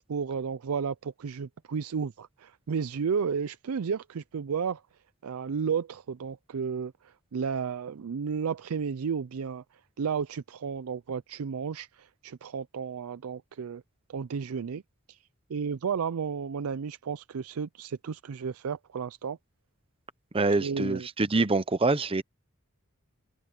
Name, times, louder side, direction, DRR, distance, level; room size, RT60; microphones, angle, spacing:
voice 1, 0.1-4.8 5.2-9.6 10.0-13.8 14.1-14.8 15.1-15.2 15.5-19.4 20.6-21.1, right 6 dB, 80° right, 0.4 m, -32 dB
voice 2, 20.3-22.2, right 3 dB, 25° right, 0.8 m, -25 dB
open air
head